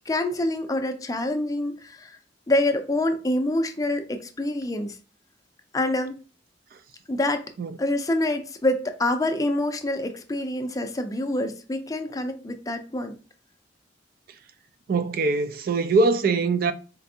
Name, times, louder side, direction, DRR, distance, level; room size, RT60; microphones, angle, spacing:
voice 1, 0.1-2.2 2.5-5.0 5.7-6.2 7.1-7.5 7.8-13.1, left 1 dB, 20° left, 0.5 m, -26 dB
voice 2, 14.9-16.7, right 3 dB, 50° right, 0.3 m, -22 dB
4.4 x 3.4 x 2.7 m
head